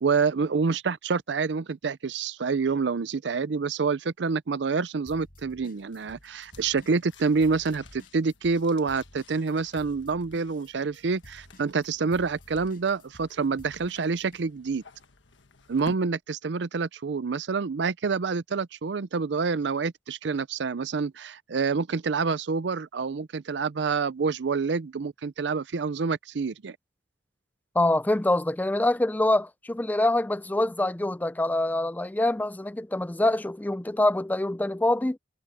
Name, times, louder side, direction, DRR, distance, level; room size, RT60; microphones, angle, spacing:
voice 1, 0.0-14.8 15.7-26.8, right 4 dB, 70° right, 0.5 m, -27 dB
sound 1, 5.1-6.3 6.5-14.4, left 1 dB, 50° left, 7.8 m, -52 dB
sound 2, 5.7-16.0, left 2 dB, 85° left, 1.5 m, -53 dB
voice 2, 27.7-35.2, left 1 dB, 10° left, 0.4 m, -25 dB
head